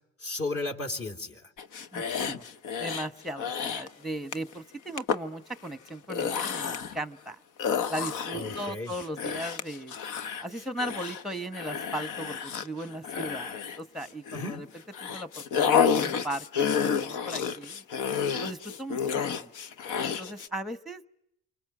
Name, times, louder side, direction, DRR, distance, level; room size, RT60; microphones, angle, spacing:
voice 1, 0.2-1.5 8.3-8.9 14.3-14.6, left 2 dB, 50° left, 3 dB, 3.6 m, -34 dB
sound 1, 1.6-3.1 3.4-3.9 4.3-4.5 5.0-5.2 5.9-7.0 7.6-14.6 14.9-20.5, left 7 dB, 85° left, 1.0 m, -30 dB
voice 2, 1.9-2.4 2.8-7.4 7.9-9.9 10.4-14.7 15.0-17.8 18.4-19.0 19.3-19.5 20.0-21.1, right 1 dB, ahead, 13 dB, 0.9 m, -37 dB
29.0 x 25.0 x 7.6 m, 0.81 s
cardioid pair, 90°, 30 cm